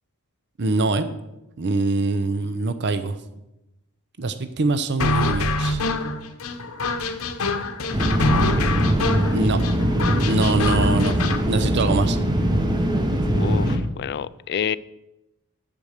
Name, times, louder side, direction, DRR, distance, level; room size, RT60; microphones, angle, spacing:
voice 1, 0.6-1.1 1.6-3.1 4.2-5.8 9.3-9.6 10.2-11.1 11.5-12.2, right 3 dB, 50° right, 11 dB, 0.6 m, -23 dB
sound 1, 5.0-11.4, left 2 dB, 70° left, 0.9 m, -25 dB
sound 2, 7.9-13.8, equal, 20° right, 0.9 m, -21 dB
voice 2, 13.3-14.8, left 8 dB, 50° left, 18 dB, 0.3 m, -28 dB
8.6 x 7.6 x 6.5 m, 0.92 s
head